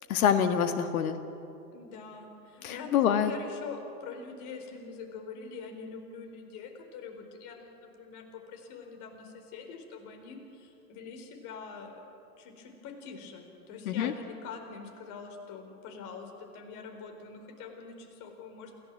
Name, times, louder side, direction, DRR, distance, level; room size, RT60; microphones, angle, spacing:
voice 1, 0.1-1.2 2.6-3.3 13.9-14.1, left 8 dB, 65° left, 7 dB, 1.7 m, -26 dB
voice 2, 1.7-11.9 12.4-18.8, left 5 dB, 40° left, 3 dB, 4.6 m, -44 dB
28.0 x 16.5 x 7.7 m, 2.7 s
hypercardioid pair, 115°, 47 cm